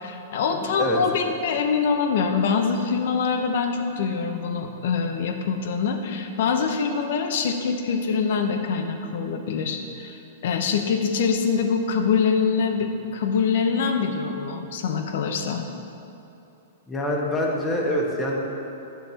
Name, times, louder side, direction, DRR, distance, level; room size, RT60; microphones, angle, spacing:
voice 1, 0.0-15.6, left 5 dB, 65° left, 5 dB, 0.8 m, -24 dB
voice 2, 0.5-1.0 16.9-18.4, left 1 dB, 15° left, -1 dB, 1.3 m, -25 dB
11.0 x 7.1 x 2.9 m, 2.9 s
hypercardioid pair, 115°, 0 cm